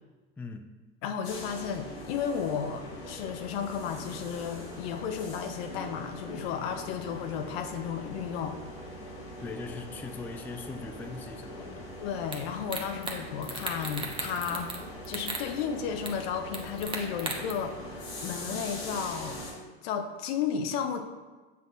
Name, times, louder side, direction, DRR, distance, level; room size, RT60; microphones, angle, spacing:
voice 1, 0.4-0.7 9.4-11.9, left 4 dB, 5° left, 6 dB, 0.3 m, -40 dB
voice 2, 1.0-8.6 12.0-14.7 15.1-19.4 19.8-21.0, left 7 dB, 70° left, 6 dB, 0.8 m, -33 dB
sound 1, 1.2-19.5, left 1 dB, 90° left, 2.0 m, -42 dB
sound 2, 12.3-12.4 12.7-13.2 13.4-14.8 15.1-15.4 16.1-16.2 16.5-17.5, right 3 dB, 15° right, 1.0 m, -35 dB
7.4 x 5.9 x 2.4 m, 1.3 s
hypercardioid pair, 95°, 32 cm